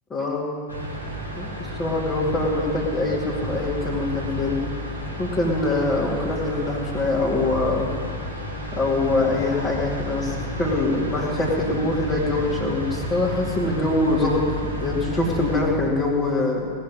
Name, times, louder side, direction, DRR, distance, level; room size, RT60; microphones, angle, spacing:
voice 1, 0.1-0.5 1.4-4.6 5.2-7.9 8.7-14.4 14.8-16.7, left 2 dB, 20° left, -5 dB, 2.4 m, -24 dB
sound 1, 0.7-15.6, equal, 90° left, 3.8 m, -31 dB
18.0 x 7.4 x 9.6 m, 2.1 s
figure-of-eight pair, 90°, 0 cm